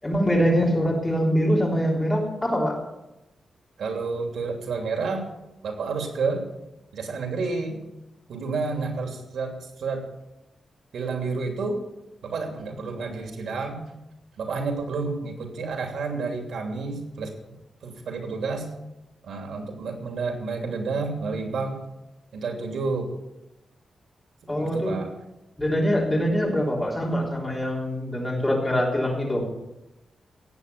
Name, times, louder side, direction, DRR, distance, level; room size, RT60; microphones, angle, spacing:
voice 1, 0.0-2.7 24.5-25.0 25.6-29.4, equal, 10° left, -3 dB, 3.5 m, -23 dB
voice 2, 3.8-5.3 5.6-6.4 6.9-7.8 8.3-10.0 10.9-11.8 12.2-13.9 14.4-17.3 17.8-18.7 19.2-21.8 22.3-23.1 24.4-25.1, right 4 dB, 85° right, 3 dB, 3.0 m, -30 dB
17.5 x 8.4 x 6.9 m, 0.94 s
wide cardioid pair, 180°, 0 cm